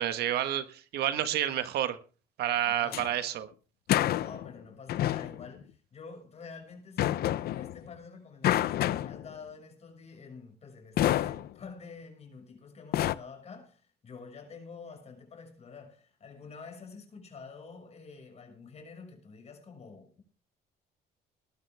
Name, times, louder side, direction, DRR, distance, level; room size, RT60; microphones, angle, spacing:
voice 1, 0.0-2.0 2.4-3.5, right 11 dB, 75° right, 1.6 m, -29 dB
sound 1, 2.7-3.1 3.9-4.5 4.9-5.5 7.0-7.9 8.4-9.3 11.0-11.5 12.9-13.1, left 13 dB, 65° left, 0.7 m, -28 dB
voice 2, 2.7-3.1 4.1-20.2, left 5 dB, 40° left, 6.2 m, -48 dB
19.0 x 12.5 x 3.5 m
cardioid pair, 110°, 17 cm